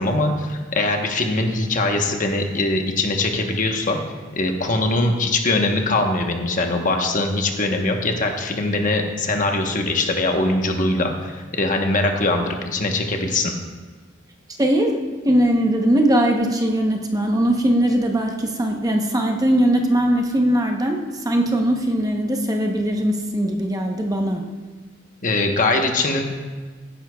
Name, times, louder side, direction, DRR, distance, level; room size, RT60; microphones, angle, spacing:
voice 1, 0.0-4.0 4.3-13.5 25.2-26.2, left 2 dB, 40° left, 3 dB, 1.1 m, -22 dB
voice 2, 14.6-15.0 15.2-24.4, right 1 dB, 20° right, 2 dB, 0.8 m, -20 dB
16.0 x 10.0 x 2.3 m, 1.4 s
head